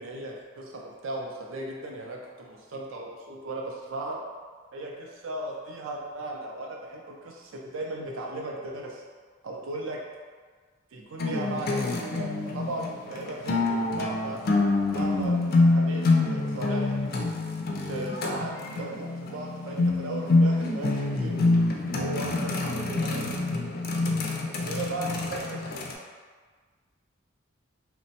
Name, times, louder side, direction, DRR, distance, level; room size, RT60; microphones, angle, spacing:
voice 1, 0.0-4.2 4.7-9.0 9.4-10.0 10.9-14.4 14.9-15.3 15.7-16.9 17.9-21.5 21.9-23.7 24.6-25.8, right 2 dB, 85° right, 0 dB, 0.5 m, -37 dB
sound 1, 11.2-25.9, left 2 dB, 50° left, 0.3 m, -26 dB
2.9 x 2.1 x 2.8 m, 1.5 s
head